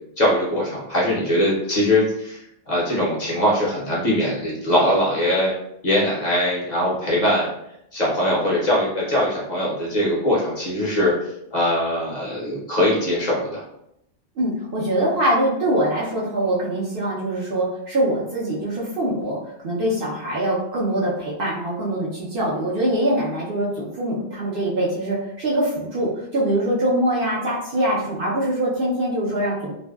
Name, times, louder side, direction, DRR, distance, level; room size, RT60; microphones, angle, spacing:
voice 1, 0.2-5.5 5.8-7.5 7.9-11.1 11.5-13.6, left 1 dB, 45° left, -5 dB, 0.6 m, -21 dB
voice 2, 14.4-19.4 19.6-29.7, right 1 dB, 60° right, -6 dB, 0.7 m, -23 dB
2.5 x 2.1 x 2.2 m, 0.78 s
omnidirectional pair, 1.2 m